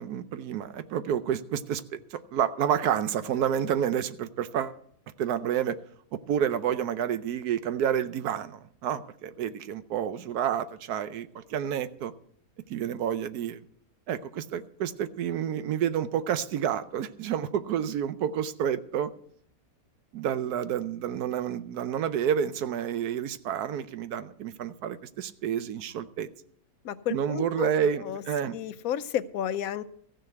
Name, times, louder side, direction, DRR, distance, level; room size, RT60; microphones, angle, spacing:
voice 1, 0.0-4.8 5.2-5.8 6.1-12.1 12.7-13.6 14.1-19.1 20.1-26.3 27.1-28.6, right 9 dB, 80° right, 12 dB, 1.2 m, -29 dB
voice 2, 26.8-27.7 28.0-28.2 28.5-29.8, left 10 dB, 70° left, 14 dB, 1.1 m, -31 dB
15.0 x 6.5 x 7.8 m, 0.64 s
omnidirectional pair, 1.6 m